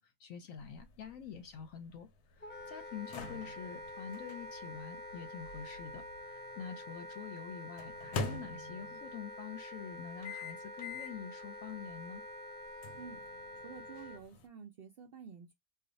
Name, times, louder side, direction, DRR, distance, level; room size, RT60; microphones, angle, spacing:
voice 1, 0.0-12.2, left 7 dB, 70° left, 0.9 m, -47 dB
sound 1, 0.6-6.7 7.8-9.1 10.2-11.3 11.7-11.9 12.8-14.5, left 3 dB, 90° left, 1.1 m, -45 dB
Wind instrument woodwind instrument, 2.4-14.2, left 1 dB, 15° left, 0.4 m, -47 dB
voice 2, 13.6-15.5, right 6 dB, 75° right, 0.5 m, -50 dB
2.5 x 2.4 x 3.8 m
omnidirectional pair, 1.6 m